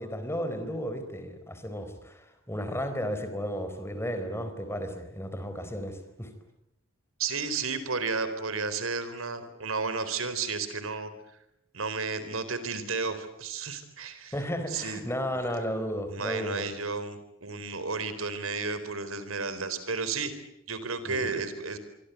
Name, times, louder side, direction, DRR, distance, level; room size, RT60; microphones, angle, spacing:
voice 1, 0.0-6.3 14.3-16.7 21.1-21.2, equal, 10° left, 8 dB, 4.3 m, -34 dB
voice 2, 7.2-11.1 11.7-14.3 14.7-15.0 16.1-20.3 20.7-21.8, right 4 dB, 85° right, 12 dB, 4.1 m, -32 dB
27.0 x 24.0 x 8.2 m, 0.81 s
head